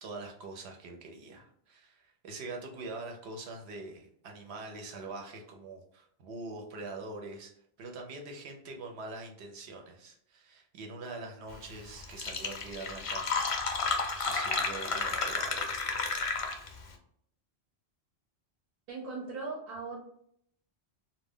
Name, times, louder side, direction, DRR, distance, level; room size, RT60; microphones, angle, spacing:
voice 1, 0.0-7.5 7.8-13.6 14.2-15.7, right 3 dB, 90° right, 2 dB, 0.9 m, -44 dB
Fill (with liquid), 11.7-11.8 12.0-16.8, left 4 dB, 60° left, 0.3 m, -32 dB
voice 2, 18.9-20.0, right 3 dB, 65° right, -2 dB, 0.8 m, -38 dB
2.3 x 2.1 x 3.5 m, 0.68 s
omnidirectional pair, 1.1 m